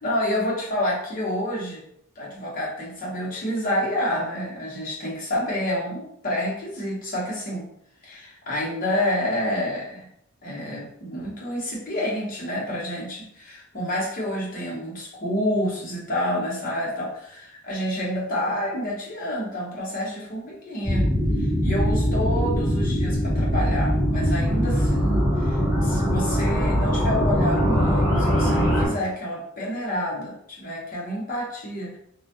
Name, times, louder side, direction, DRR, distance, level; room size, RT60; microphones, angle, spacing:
voice 1, 0.0-1.8 2.2-7.7 8.0-10.1 10.4-21.1 21.4-32.0, equal, 45° left, -4 dB, 0.8 m, -28 dB
sound 1, 20.8-28.9, equal, ahead, 1.3 m, -22 dB
2.3 x 2.1 x 2.8 m, 0.73 s
head